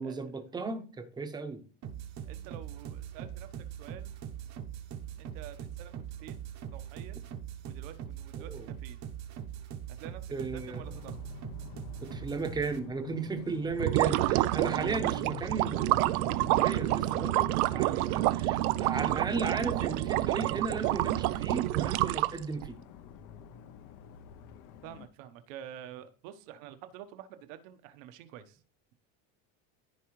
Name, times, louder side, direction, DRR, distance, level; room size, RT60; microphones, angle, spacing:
voice 1, 0.0-1.6 8.5-8.7 10.3-10.9 12.0-22.8, right 4 dB, 10° right, 0.9 m, -35 dB
sound 1, 1.8-12.8, right 9 dB, 40° right, 1.0 m, -42 dB
voice 2, 2.2-3.5 3.8-4.1 5.2-6.4 6.7-7.2 7.6-9.0 9.9-11.2 24.8-28.6, right 10 dB, 70° right, 1.2 m, -48 dB
sound 2, 10.5-25.1, left 8 dB, 50° left, 0.8 m, -47 dB
sound 3, 13.7-22.7, right 18 dB, 90° right, 0.6 m, -28 dB
14.0 x 4.8 x 3.1 m
cardioid pair, 160°, 42 cm